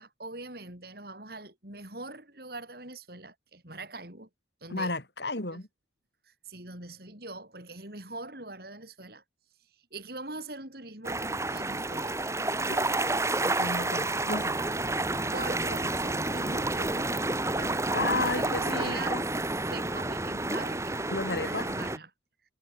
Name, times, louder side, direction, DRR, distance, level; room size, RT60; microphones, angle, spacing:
voice 1, 0.0-4.3 4.6-4.9 5.5-5.6 6.3-9.2 9.9-12.2 15.3-19.2 19.7-21.0 21.4-22.1, right 2 dB, 55° right, 6.1 m, -42 dB
voice 2, 4.7-5.7 12.7-12.9 13.4-14.6 17.9-19.2 21.1-21.7, left 2 dB, 65° left, 4.5 m, -33 dB
sound 1, 11.0-22.0, right 2 dB, 15° right, 1.8 m, -30 dB
head